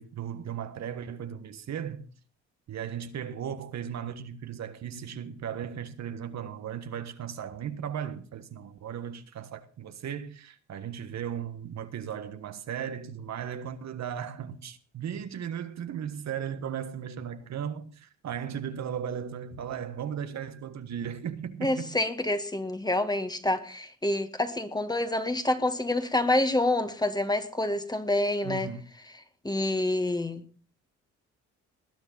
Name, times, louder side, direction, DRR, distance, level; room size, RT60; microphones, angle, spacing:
voice 1, 0.0-2.1 2.7-21.9 28.4-28.8, right 8 dB, 65° right, 1.5 m, -36 dB
voice 2, 21.6-28.7 29.4-30.4, left 1 dB, 15° left, 1.9 m, -27 dB
19.5 x 9.9 x 4.3 m
cardioid pair, 90°, 30 cm